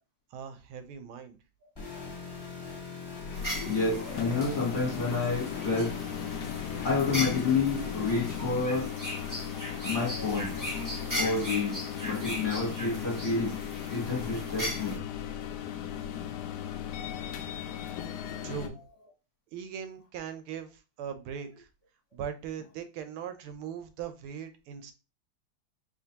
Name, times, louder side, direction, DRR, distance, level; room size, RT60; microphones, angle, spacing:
voice 1, 0.3-1.4 18.4-18.8 19.5-21.7 22.1-24.9, right 8 dB, 85° right, 1.5 m, -40 dB
sound 1, 1.8-8.6, left 4 dB, 15° left, 0.9 m, -41 dB
sound 2, 3.0-18.7, left 9 dB, 85° left, 0.9 m, -37 dB
sound 3, 3.3-15.0, equal, 15° right, 0.8 m, -38 dB
voice 2, 3.6-6.4 6.8-9.0 9.8-10.6 11.2-13.6 13.9-15.0 15.3-15.5 17.0-17.1, left 4 dB, 45° left, 1.1 m, -29 dB
4.4 x 3.0 x 2.8 m
omnidirectional pair, 2.3 m